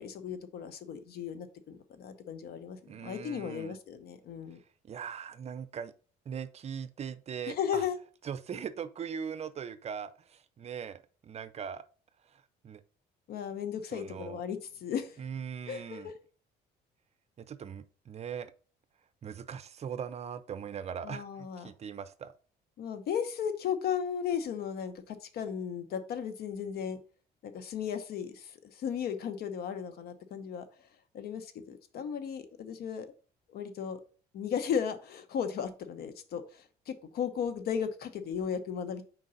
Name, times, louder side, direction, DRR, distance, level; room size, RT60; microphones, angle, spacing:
voice 1, 0.0-4.6 7.5-8.0 13.3-15.2 15.7-16.1 21.0-21.7 22.8-27.0 27.4-30.6 31.1-33.1 33.5-34.0 34.3-39.0, left 8 dB, 65° left, 10 dB, 0.9 m, -35 dB
voice 2, 2.9-3.8 4.8-5.9 6.3-7.8 8.2-11.8 12.2-12.8 13.9-14.4 15.2-16.1 17.4-18.5 19.2-22.3, right 7 dB, 40° right, 13 dB, 0.5 m, -40 dB
4.6 x 3.8 x 5.5 m, 0.39 s
cardioid pair, 110°, 17 cm